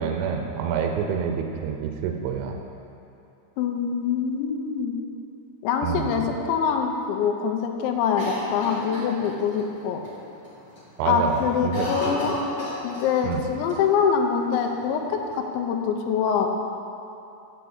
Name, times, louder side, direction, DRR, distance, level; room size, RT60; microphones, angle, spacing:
voice 1, 0.0-2.6 5.8-6.2 11.0-11.9 13.2-13.4, right 7 dB, 80° right, 3 dB, 2.9 m, -27 dB
voice 2, 3.6-5.0 5.6-10.0 11.1-12.3 12.8-16.5, left 6 dB, 80° left, 3 dB, 2.8 m, -24 dB
Cough, 8.2-9.7 10.0-10.1 10.4-10.9 11.1-13.4 13.7-13.8 14.5-15.3, left 1 dB, 40° left, 2.0 m, -33 dB
10.5 x 4.5 x 7.0 m, 2.7 s
omnidirectional pair, 5.5 m